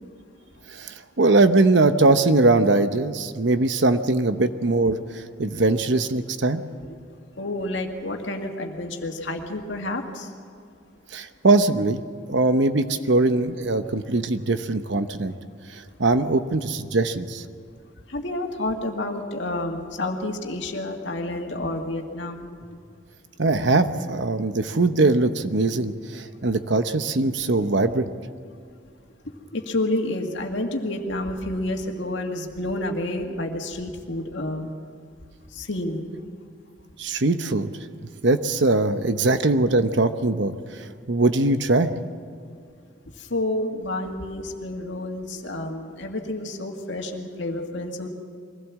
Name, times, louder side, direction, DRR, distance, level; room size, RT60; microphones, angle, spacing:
voice 1, 0.7-6.6 11.1-12.0 12.3-15.3 15.7-17.4 23.4-28.1 37.0-37.7 38.2-40.5 41.1-41.9, right 2 dB, 65° right, 10 dB, 0.9 m, -21 dB
voice 2, 7.4-10.3 18.1-22.5 29.5-34.7 35.5-36.0 43.2-48.1, left 1 dB, 65° left, 3 dB, 2.1 m, -29 dB
23.0 x 16.5 x 7.4 m, 2.2 s
head